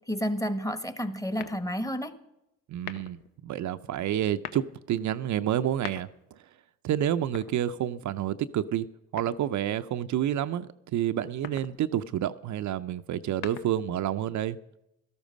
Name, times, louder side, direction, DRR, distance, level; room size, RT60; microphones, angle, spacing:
voice 1, 0.1-2.2, equal, 10° left, 1.2 m, -30 dB
sound 1, 1.4-2.0 2.7-3.3 4.2-4.7 5.6-6.4 7.2-8.1 9.2-9.8 11.2-11.8 13.1-14.0, left 10 dB, 80° left, 0.9 m, -43 dB
voice 2, 2.7-3.2 3.4-4.6 4.9-6.4 6.8-8.9 9.1-14.6, right 11 dB, 60° right, 0.6 m, -29 dB
13.0 x 12.5 x 5.2 m
supercardioid pair, 65°, 34 cm